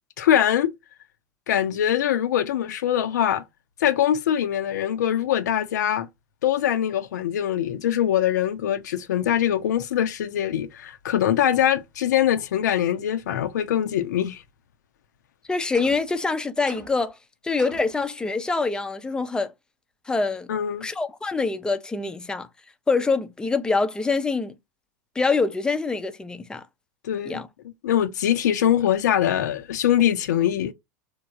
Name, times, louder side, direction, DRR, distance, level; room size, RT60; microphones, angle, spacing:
voice 1, 0.2-0.7 1.5-3.4 3.8-6.1 6.4-14.4 20.5-20.9 27.0-27.4 27.8-30.7, left 10 dB, 70° left, 0.4 m, -23 dB
voice 2, 15.5-17.2 17.4-19.5 20.1-20.5 20.8-22.5 22.9-24.5 25.2-26.6 27.2-27.5, left 4 dB, 10° left, 0.4 m, -25 dB
sound 1, 15.7-16.2 16.7-17.1 17.6-18.0, right 2 dB, 85° right, 0.8 m, -42 dB
3.0 x 2.0 x 2.4 m
figure-of-eight pair, 85°, 10 cm